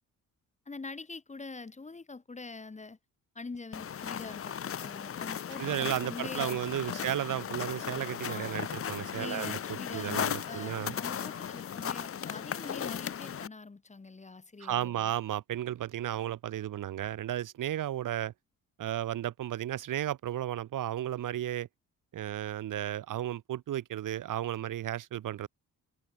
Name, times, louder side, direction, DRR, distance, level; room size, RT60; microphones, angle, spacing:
voice 1, 0.7-3.0 3.3-7.1 8.3-8.7 9.1-15.2, left 3 dB, 20° left, 1.4 m, -44 dB
sound 1, 3.7-13.5, left 8 dB, 40° left, 0.9 m, -36 dB
voice 2, 5.6-10.9 14.6-18.3 18.8-21.7 22.1-25.5, right 12 dB, 70° right, 1.7 m, -34 dB
cardioid pair, 75°, 33 cm